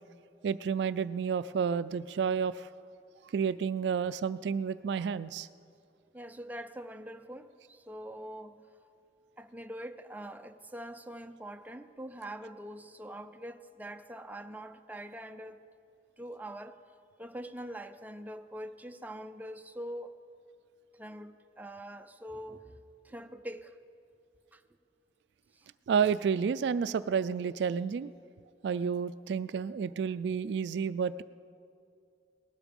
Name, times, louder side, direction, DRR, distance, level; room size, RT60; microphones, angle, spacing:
voice 1, 0.4-2.7 3.3-5.5 25.9-28.1 28.6-31.2, right 6 dB, 70° right, 16 dB, 0.3 m, -30 dB
voice 2, 6.1-8.7 9.4-15.6 16.2-16.8 17.2-20.1 20.9-22.8 23.0-23.8 24.5-24.6 25.5-25.7, right 1 dB, 10° right, 7 dB, 0.5 m, -44 dB
19.0 x 12.0 x 5.3 m, 2.5 s
head